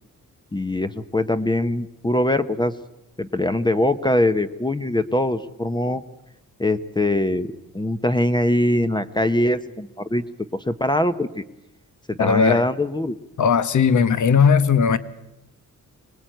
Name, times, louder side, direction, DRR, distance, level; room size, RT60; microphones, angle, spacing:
voice 1, 0.5-2.7 3.2-6.0 6.6-7.5 7.7-10.2 10.5-11.4 12.1-13.2, left 1 dB, 15° left, 0.8 m, -22 dB
voice 2, 12.2-12.6 13.4-15.0, left 6 dB, 65° left, 1.2 m, -17 dB
25.0 x 20.0 x 9.1 m
wide cardioid pair, 145°, 32 cm